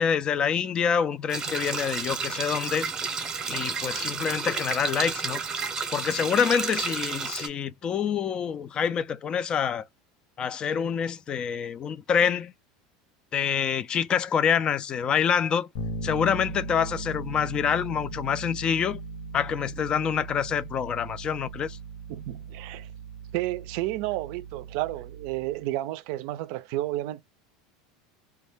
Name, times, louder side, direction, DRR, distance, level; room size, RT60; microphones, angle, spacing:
voice 1, 0.0-2.9 3.5-5.4 5.9-9.8 10.4-12.5 13.3-15.7 16.0-19.0 19.3-21.8, left 7 dB, 30° left, 0.3 m, -26 dB
sound 1, 1.3-7.5, right 5 dB, 20° right, 0.7 m, -31 dB
Bass guitar, 15.7-25.6, right 2 dB, 55° left, 0.8 m, -38 dB
voice 2, 22.1-22.9 23.3-27.2, right 16 dB, 60° right, 0.4 m, -31 dB
2.2 x 2.1 x 3.2 m
supercardioid pair, 130°, 3 cm